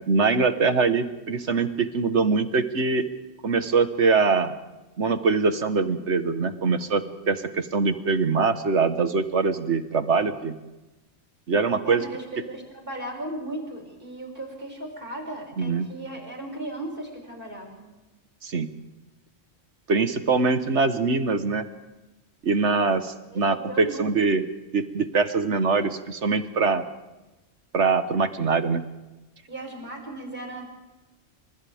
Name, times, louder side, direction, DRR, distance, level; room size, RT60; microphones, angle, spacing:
voice 1, 0.1-3.0 3.4-4.6 5.0-10.5 11.5-12.0 15.6-15.9 18.4-18.7 19.9-21.6 22.4-24.4 24.7-26.8 27.7-28.8, right 4 dB, 65° right, 9 dB, 1.6 m, -23 dB
voice 2, 11.8-17.9 23.3-24.3 29.5-30.6, right 1 dB, 45° right, 0 dB, 6.6 m, -36 dB
29.5 x 26.5 x 3.6 m, 1.1 s
omnidirectional pair, 1.3 m